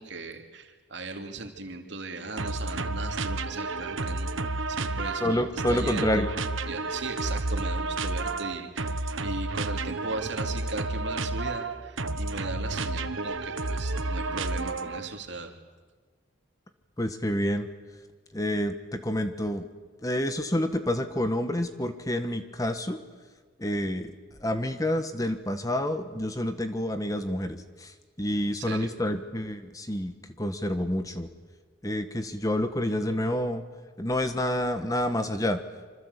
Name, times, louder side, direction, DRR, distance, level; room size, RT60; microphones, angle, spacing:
voice 1, 0.0-6.3 6.7-15.5 28.6-28.9, right 3 dB, 65° right, 4 dB, 3.0 m, -38 dB
sound 1, 2.4-15.1, right 3 dB, 90° right, 1.3 m, -31 dB
voice 2, 5.2-6.3 17.0-17.7 18.3-19.7 20.0-23.0 23.6-24.1 24.4-27.9 28.2-31.3 31.8-33.6 34.0-35.6, left 1 dB, 15° left, 8 dB, 1.4 m, -28 dB
26.5 x 25.5 x 8.3 m, 1.4 s
head